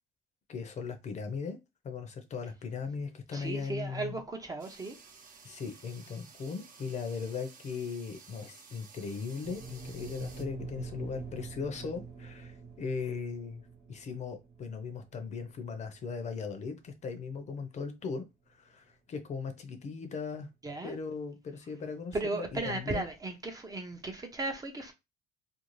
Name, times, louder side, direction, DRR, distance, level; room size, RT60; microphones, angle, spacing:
voice 1, 0.5-1.6 1.8-4.2 5.4-20.5 20.8-23.0, left 5 dB, 45° left, 0.6 m, -38 dB
voice 2, 3.3-5.0 20.6-20.9 22.1-24.9, right 2 dB, 20° right, 0.5 m, -36 dB
sound 1, 4.6-10.4, right 5 dB, 55° right, 0.8 m, -54 dB
sound 2, 9.4-17.7, right 4 dB, 80° right, 1.1 m, -46 dB
2.5 x 2.3 x 3.0 m
cardioid pair, 110°, 17 cm